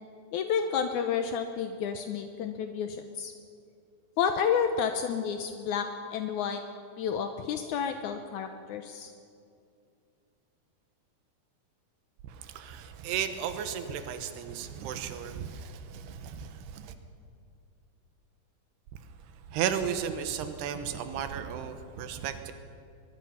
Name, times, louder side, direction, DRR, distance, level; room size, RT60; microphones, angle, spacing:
voice 1, 0.3-3.3 4.2-6.6 6.9-9.1, left 7 dB, 80° left, 6 dB, 1.8 m, -30 dB
voice 2, 12.2-16.9 19.5-22.5, right 8 dB, 85° right, 8 dB, 3.2 m, -34 dB
23.0 x 22.0 x 5.8 m, 2.4 s
omnidirectional pair, 4.6 m